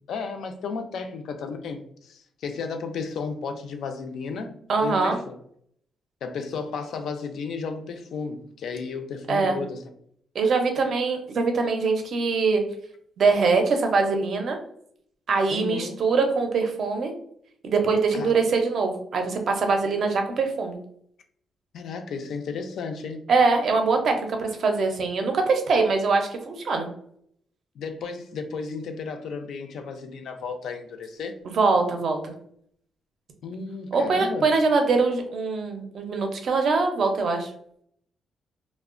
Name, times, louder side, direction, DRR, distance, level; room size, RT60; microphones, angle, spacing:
voice 1, 0.1-5.4 6.2-9.8 15.5-16.0 18.1-18.3 21.7-23.2 27.8-31.4 33.4-34.5, left 5 dB, 65° left, 6 dB, 0.3 m, -33 dB
voice 2, 4.7-5.2 9.3-9.6 10.3-12.6 13.2-14.6 15.3-17.1 17.6-20.8 23.3-26.9 31.5-32.3 33.9-37.5, right 4 dB, 50° right, 4 dB, 0.4 m, -23 dB
2.8 x 2.0 x 2.4 m, 0.66 s
cardioid pair, 160°, 0 cm